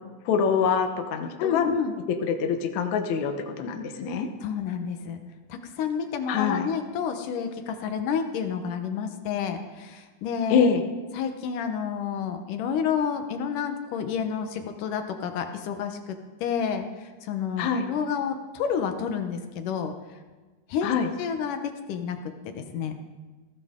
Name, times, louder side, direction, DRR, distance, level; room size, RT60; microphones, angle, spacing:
voice 1, 0.3-1.7 2.2-4.3 6.3-6.7 10.5-10.8 17.6-17.9 20.8-21.1, left 6 dB, 70° left, 5 dB, 2.4 m, -25 dB
voice 2, 1.4-1.9 4.4-5.2 5.5-10.7 11.1-16.2 16.4-19.9 20.7-20.9 21.2-22.2 22.5-22.9, left 7 dB, 85° left, 6 dB, 2.6 m, -29 dB
20.0 x 15.5 x 3.7 m, 1.3 s
omnidirectional pair, 3.7 m